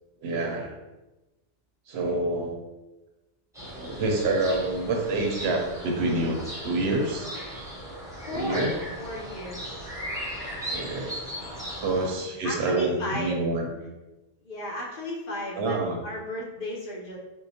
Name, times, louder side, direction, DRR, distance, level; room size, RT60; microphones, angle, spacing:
voice 1, 0.2-0.7 1.9-2.6 3.7-7.3 8.3-8.7 10.7-11.3 11.8-13.7 15.6-16.0, right 2 dB, 65° right, 1 dB, 0.8 m, -27 dB
sound 1, 3.5-12.1, equal, 5° right, 0.7 m, -37 dB
voice 2, 8.2-9.9 12.0-13.4 14.4-17.2, equal, 55° left, -3 dB, 0.7 m, -34 dB
4.4 x 2.0 x 2.7 m, 1.1 s
omnidirectional pair, 1.2 m